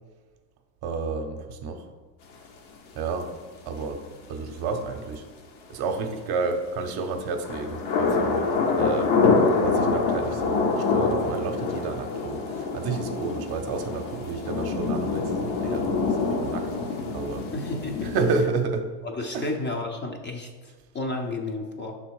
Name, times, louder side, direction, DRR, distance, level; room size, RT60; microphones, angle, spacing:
voice 1, 0.8-1.9 2.9-3.3 3.7-4.0 4.3-5.3 5.7-8.4 8.8-17.5 18.0-18.9 19.3-19.5, right 4 dB, 50° right, 6 dB, 0.8 m, -31 dB
sound 1, 7.4-18.5, left 4 dB, 55° left, 1.0 m, -25 dB
voice 2, 17.5-18.1 19.0-22.0, left 2 dB, 25° left, 2 dB, 0.6 m, -32 dB
6.1 x 3.4 x 4.7 m, 1.4 s
supercardioid pair, 105°, 48 cm